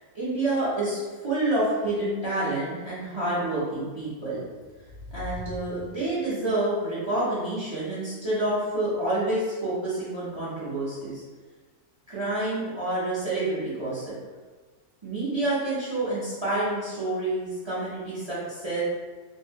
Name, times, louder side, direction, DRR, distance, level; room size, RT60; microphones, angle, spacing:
voice 1, 0.0-4.4 5.1-11.2 12.1-14.1 15.0-18.8, right 2 dB, 25° right, -9 dB, 0.7 m, -28 dB
sound 1, 4.5-6.5, left 1 dB, 50° left, 0.7 m, -42 dB
2.6 x 2.5 x 3.6 m, 1.4 s
omnidirectional pair, 1.6 m